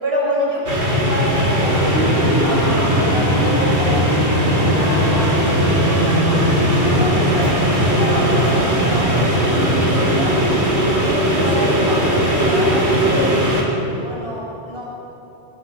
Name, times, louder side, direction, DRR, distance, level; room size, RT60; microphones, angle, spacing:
voice 1, 0.0-4.0 4.4-6.4 6.8-10.4 11.0-13.4 13.9-14.9, equal, 65° right, -4 dB, 5.4 m, -27 dB
sound 1, 0.7-13.6, equal, 85° right, 4.1 m, -17 dB
24.0 x 20.0 x 5.9 m, 3.0 s
omnidirectional pair, 1.1 m